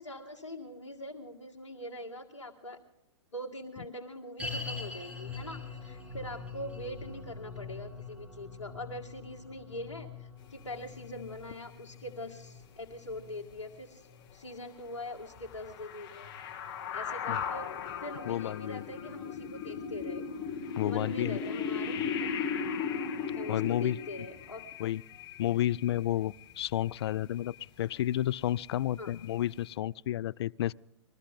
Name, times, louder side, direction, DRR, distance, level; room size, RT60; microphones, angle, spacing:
voice 1, 0.0-2.8 3.3-16.3 16.9-17.7 18.0-20.3 20.8-22.3 22.5-22.9 23.3-24.6 29.0-29.1, left 1 dB, 85° left, 2.1 m, -43 dB
sound 1, 4.4-15.7 15.9-16.0 16.7-16.8, left 4 dB, 10° right, 4.3 m, -44 dB
sound 2, 10.9-11.0 11.3-11.4 12.8-13.1 13.5-13.6 15.2-27.1 27.4-27.6 28.0-28.2 28.5-29.3 29.6-29.7, left 6 dB, 45° left, 2.4 m, -37 dB
voice 2, 18.3-18.8 20.8-21.4 23.5-24.0 24.8-25.0 25.4-30.7, left 12 dB, 65° left, 0.4 m, -31 dB
22.5 x 14.0 x 3.7 m
hypercardioid pair, 120°, 15 cm